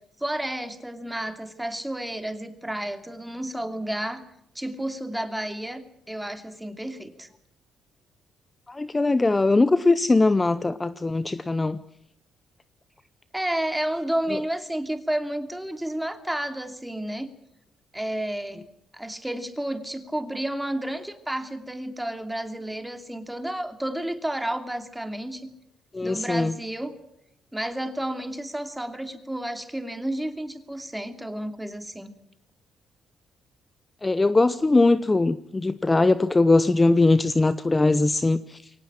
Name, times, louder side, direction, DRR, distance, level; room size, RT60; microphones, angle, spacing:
voice 1, 0.2-4.2 4.5-7.3 13.3-17.3 17.9-18.6 18.9-25.6 26.0-27.0 27.5-32.1, right 1 dB, 5° right, 8 dB, 2.8 m, -31 dB
voice 2, 8.7-11.8 25.9-26.5 34.0-38.6, left 2 dB, 20° left, 14 dB, 0.8 m, -21 dB
23.0 x 18.0 x 8.9 m, 0.78 s
cardioid pair, 90°, 0 cm